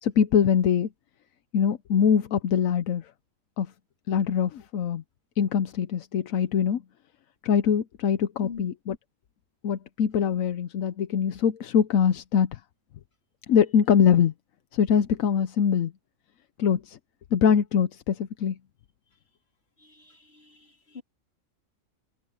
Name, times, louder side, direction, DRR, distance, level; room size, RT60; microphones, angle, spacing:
voice 1, 0.0-0.9 1.5-3.0 3.6-3.7 4.1-5.0 5.4-6.8 7.4-9.0 9.6-12.6 13.5-14.3 14.7-15.9 16.6-17.0 17.3-18.6, left 7 dB, 80° left, 1.2 m, -23 dB
voice 2, 19.8-21.0, left 6 dB, 50° left, 3.7 m, -43 dB
omnidirectional pair, 1.4 m